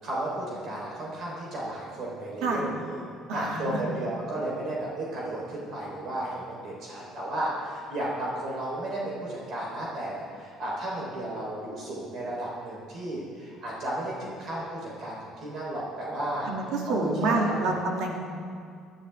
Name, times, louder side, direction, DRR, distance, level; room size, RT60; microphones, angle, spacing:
voice 1, 0.0-3.0 3.3-16.5 16.9-17.7, right 1 dB, 50° right, -5 dB, 3.7 m, -33 dB
voice 2, 3.3-3.8 16.5-18.2, right 2 dB, 75° right, 0 dB, 2.4 m, -27 dB
19.0 x 11.5 x 3.5 m, 2.3 s
cardioid pair, 135°, 0 cm